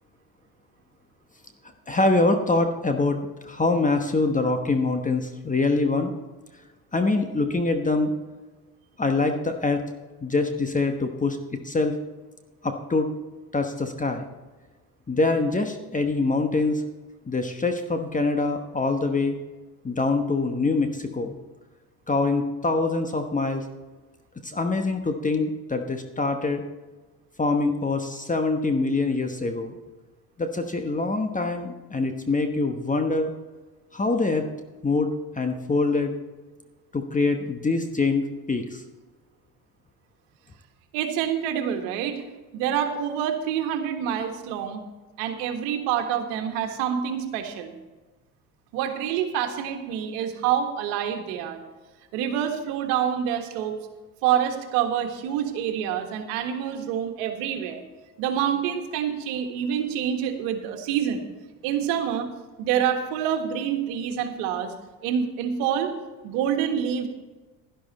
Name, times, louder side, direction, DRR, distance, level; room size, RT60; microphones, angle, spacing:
voice 1, 1.9-3.2 3.4-6.1 6.9-8.1 9.0-9.8 10.2-12.0 12.6-13.1 13.5-14.2 15.1-16.8 17.3-19.4 19.8-21.4 22.1-23.6 24.4-26.6 27.4-29.8 30.4-33.3 33.9-34.5 34.8-36.1 36.9-38.8, left 3 dB, 20° left, 6 dB, 1.1 m, -24 dB
voice 2, 40.9-42.2 42.5-44.9 45.2-47.7 48.7-51.6 52.1-53.8 54.2-57.8 58.2-61.2 61.6-62.3 62.6-64.7 65.0-65.9 66.2-67.1, right 9 dB, 75° right, 5 dB, 1.6 m, -27 dB
11.5 x 11.0 x 4.2 m, 1.2 s
hypercardioid pair, 75°, 44 cm